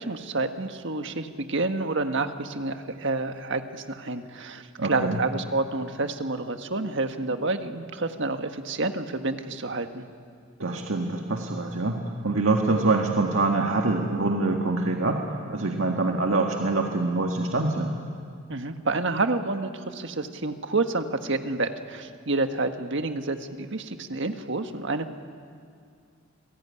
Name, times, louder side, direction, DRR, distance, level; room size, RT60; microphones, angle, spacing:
voice 1, 0.0-10.1 18.5-25.1, right 3 dB, 65° right, 7 dB, 1.6 m, -29 dB
voice 2, 4.8-5.2 10.6-15.2 15.5-17.9, right 3 dB, 90° right, 1 dB, 1.8 m, -25 dB
29.0 x 20.5 x 9.9 m, 2.2 s
head